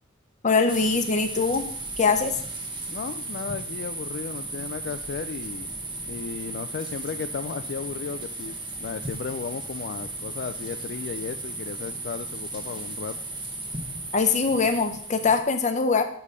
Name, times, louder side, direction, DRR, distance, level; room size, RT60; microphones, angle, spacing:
voice 1, 0.4-1.6 2.0-2.4 14.1-16.0, left 4 dB, 35° left, 7 dB, 0.8 m, -22 dB
sound 1, 0.7-15.4, right 2 dB, 25° right, 1.1 m, -35 dB
voice 2, 2.9-5.7 6.1-8.5 8.8-13.1, left 6 dB, 50° left, 9 dB, 0.3 m, -35 dB
6.8 x 5.0 x 5.5 m, 0.62 s
head